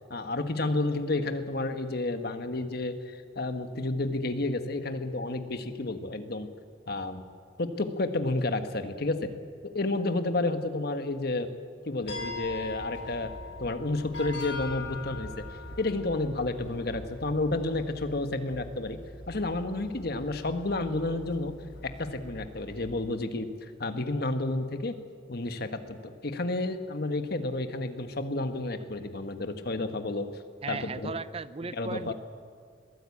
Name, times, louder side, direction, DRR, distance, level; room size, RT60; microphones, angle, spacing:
voice 1, 0.1-6.5 6.9-7.2 7.6-9.3 9.7-11.5 11.8-13.3 13.6-15.5 15.8-19.0 19.3-21.5 21.8-24.9 25.3-30.3 30.7-31.2 31.7-32.1, left 2 dB, 60° left, 8 dB, 1.4 m, -31 dB
sound 1, 12.0-23.1, left 2 dB, 75° left, 3.8 m, -42 dB
voice 2, 30.6-32.1, right 4 dB, 35° right, 16 dB, 0.6 m, -36 dB
21.5 x 15.5 x 8.5 m, 2.1 s
head